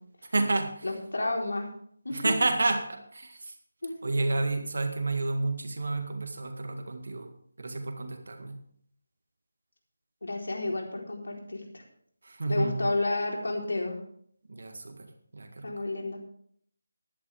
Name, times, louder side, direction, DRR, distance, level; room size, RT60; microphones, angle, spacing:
voice 1, 0.2-0.9 2.1-3.6 4.0-7.3 7.6-8.6 12.2-12.9 14.5-15.8, right 2 dB, 65° right, 5 dB, 1.8 m, -30 dB
voice 2, 0.8-1.7 2.0-2.4 3.8-3.9 10.2-11.8 12.5-14.0 15.6-16.2, left 2 dB, 80° left, 0 dB, 3.9 m, -31 dB
14.5 x 11.5 x 3.5 m, 0.63 s
figure-of-eight pair, 170°, 0 cm